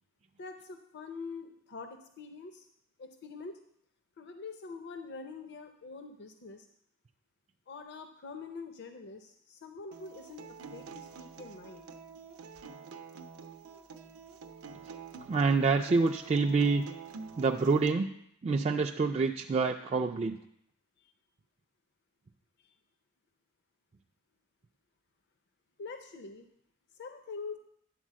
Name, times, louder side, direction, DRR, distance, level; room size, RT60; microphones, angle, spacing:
voice 1, 0.4-2.7 3.0-3.6 4.2-6.7 7.7-11.9 21.0-21.1 22.6-22.7 25.8-26.5 27.0-27.6, left 4 dB, 55° left, 6 dB, 0.6 m, -45 dB
Acoustic guitar, 9.9-17.9, right 5 dB, 80° right, 0.6 m, -48 dB
voice 2, 15.3-16.8 17.4-18.1 18.4-20.4, right 4 dB, 30° right, 2 dB, 0.3 m, -27 dB
10.0 x 4.0 x 7.4 m, 0.74 s
head